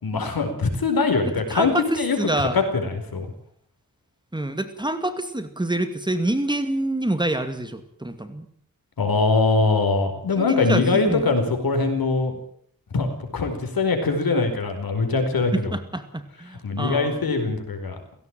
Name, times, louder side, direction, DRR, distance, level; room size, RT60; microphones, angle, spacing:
voice 1, 0.0-3.3 9.0-12.4 12.9-15.8 16.6-18.0, left 3 dB, 80° left, 6 dB, 5.0 m, -22 dB
voice 2, 1.3-2.6 4.3-8.5 10.4-11.3 15.5-17.3, right 1 dB, 10° right, 8 dB, 2.3 m, -27 dB
17.0 x 17.0 x 9.1 m, 0.64 s
wide cardioid pair, 85°, 35 cm